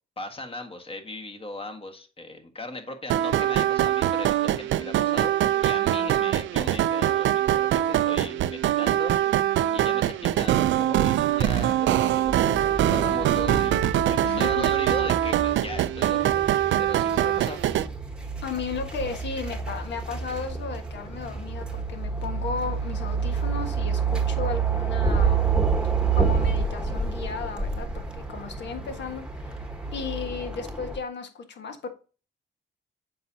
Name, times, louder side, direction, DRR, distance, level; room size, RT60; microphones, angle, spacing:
voice 1, 0.2-9.3 9.7-13.8 14.1-16.4 16.8-17.6, left 2 dB, 30° left, 5 dB, 1.6 m, -38 dB
sound 1, 3.1-17.9, right 12 dB, 75° right, 0.5 m, -23 dB
sound 2, 12.3-31.0, right 5 dB, 5° right, 1.3 m, -29 dB
voice 2, 14.2-14.7 18.4-25.5 25.8-31.9, left 5 dB, 65° left, 6 dB, 1.5 m, -35 dB
7.7 x 5.5 x 2.7 m, 0.35 s
cardioid pair, 90°, 20 cm